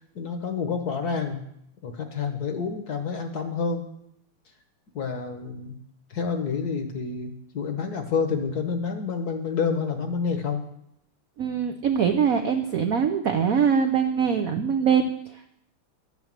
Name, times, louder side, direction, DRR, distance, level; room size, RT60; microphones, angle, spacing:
voice 1, 0.1-1.4 1.8-3.9 4.9-5.7 6.1-10.6, left 5 dB, 55° left, 6 dB, 1.3 m, -28 dB
voice 2, 11.4-15.5, right 7 dB, 85° right, 5 dB, 0.7 m, -23 dB
11.0 x 6.0 x 7.4 m, 0.75 s
omnidirectional pair, 2.4 m